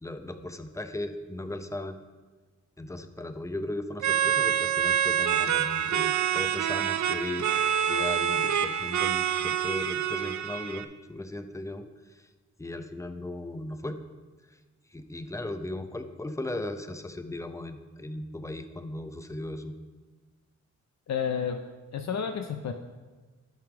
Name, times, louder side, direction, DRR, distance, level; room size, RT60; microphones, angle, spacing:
voice 1, 0.0-2.0 2.8-7.5 7.9-12.3 12.6-14.0 14.5-14.6 14.9-19.7, left 1 dB, 10° left, 8 dB, 0.5 m, -37 dB
sound 1, 4.0-10.8, right 9 dB, 65° right, 0.5 m, -26 dB
voice 2, 21.1-21.6 21.9-22.7, left 7 dB, 65° left, 6 dB, 0.5 m, -30 dB
10.5 x 3.5 x 5.8 m, 1.3 s
wide cardioid pair, 100°, 30 cm